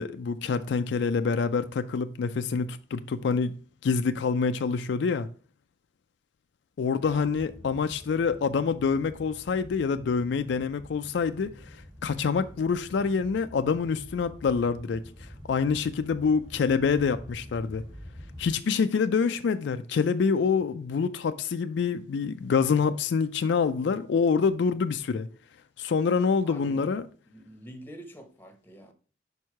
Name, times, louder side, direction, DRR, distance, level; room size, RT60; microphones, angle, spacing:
voice 1, 0.0-3.5 3.8-5.3 6.8-11.5 12.0-17.8 18.4-25.3 25.8-27.0, left 5 dB, 70° left, 0.3 m, -26 dB
voice 2, 7.0-7.3 26.4-26.8 27.3-28.9, equal, 10° left, 0.9 m, -46 dB
sound 1, 7.0-18.6, equal, 20° right, 1.3 m, -47 dB
5.4 x 4.6 x 4.6 m
head